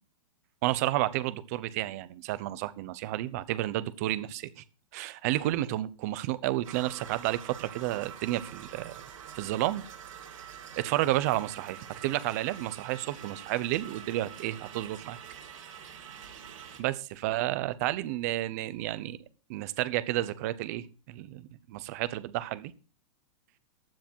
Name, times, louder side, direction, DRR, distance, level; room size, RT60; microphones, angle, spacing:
voice 1, 0.6-4.6 4.9-8.9 9.3-9.8 10.8-15.2 16.8-19.2 19.5-22.7, right 15 dB, 30° right, 0.8 m, -31 dB
sound 1, 6.6-16.8, right 8 dB, 85° right, 4.9 m, -46 dB
15.0 x 9.9 x 4.6 m
supercardioid pair, 180°, 17 cm